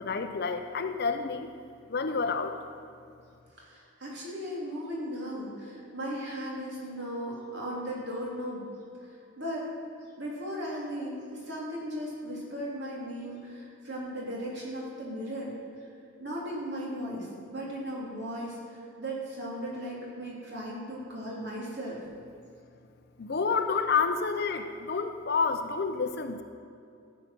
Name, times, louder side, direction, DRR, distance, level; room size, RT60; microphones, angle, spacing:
voice 1, 0.0-1.5 1.9-2.6 23.2-26.4, left 5 dB, 50° left, 7 dB, 0.6 m, -29 dB
voice 2, 3.6-8.7 9.0-9.7 10.2-15.5 16.2-22.0, equal, 55° right, -4 dB, 3.2 m, -37 dB
14.0 x 8.4 x 6.1 m, 2.5 s
head